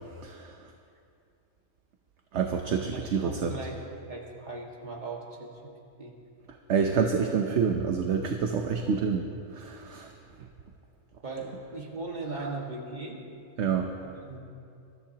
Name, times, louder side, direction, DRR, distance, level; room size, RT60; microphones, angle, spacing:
voice 1, 0.1-0.7 2.3-3.5 6.7-9.3 9.5-10.1 12.4-12.5 13.6-13.9, right 6 dB, 65° right, 3 dB, 1.0 m, -28 dB
voice 2, 2.9-3.8 4.1-5.7 6.0-6.1 11.2-13.2 14.0-14.4, right 3 dB, 35° right, -2 dB, 1.9 m, -38 dB
23.0 x 13.5 x 2.9 m, 2.5 s
omnidirectional pair, 1.3 m